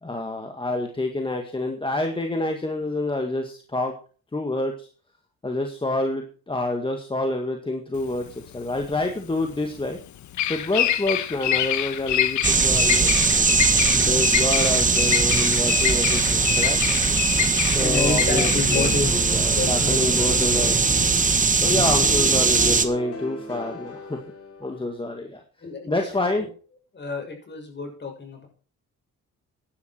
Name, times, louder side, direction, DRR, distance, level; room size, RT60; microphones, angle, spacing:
voice 1, 0.0-3.9 4.3-4.9 5.4-10.0 10.5-13.1 13.9-16.8 17.6-21.0 21.5-24.2 24.6-25.4 25.9-26.5, left 2 dB, 15° left, 4 dB, 1.9 m, -27 dB
Bird vocalization bird call bird song, 8.0-21.2, left 11 dB, 70° left, 1.2 m, -27 dB
sound 1, 12.4-22.9, right 4 dB, 25° right, 1.5 m, -20 dB
voice 2, 17.8-19.2 19.4-20.2 21.3-21.4 25.6-26.1 26.9-28.5, left 4 dB, 35° left, 3 dB, 6.5 m, -29 dB
sound 2, 19.0-24.9, left 2 dB, 50° left, 4.8 m, -37 dB
14.5 x 11.0 x 4.6 m, 0.39 s
cardioid pair, 90°, 30 cm